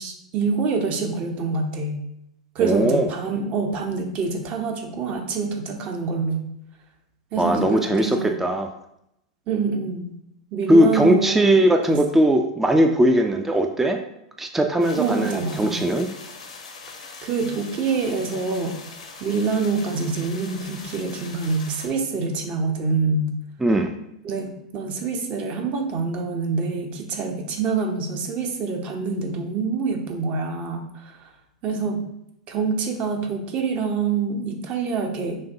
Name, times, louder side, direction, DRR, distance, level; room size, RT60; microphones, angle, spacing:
voice 1, 0.0-2.0 2.5-6.4 7.3-8.4 9.5-10.1 10.5-11.6 11.9-12.0 15.0-15.8 17.2-18.8 19.2-23.3 24.2-31.3 31.6-32.1 32.5-35.4, right 4 dB, 35° right, 4 dB, 0.7 m, -26 dB
voice 2, 2.6-3.1 7.4-8.7 10.7-14.0 14.4-16.1 23.6-23.9, right 1 dB, 10° right, 5 dB, 0.3 m, -19 dB
sound 1, 14.8-21.9, left 4 dB, 75° left, 0.7 m, -41 dB
6.1 x 2.2 x 2.8 m, 0.80 s
figure-of-eight pair, 95°, 4 cm